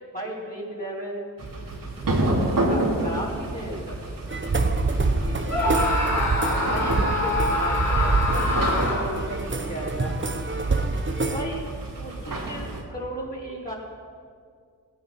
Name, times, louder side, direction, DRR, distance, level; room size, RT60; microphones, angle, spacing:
voice 1, 0.1-1.3 2.0-4.0 5.3-6.2 6.4-10.2 11.2-11.6 12.0-13.7, right 1 dB, 25° left, -6 dB, 4.6 m, -35 dB
sound 1, 1.4-12.8, right 1 dB, 60° right, 3.3 m, -30 dB
sound 2, 4.3-11.4, right 3 dB, 30° right, 1.2 m, -26 dB
Screaming, 5.5-9.3, left 2 dB, 45° left, 4.3 m, -25 dB
17.0 x 9.5 x 6.0 m, 2.1 s
cardioid pair, 40°, 37 cm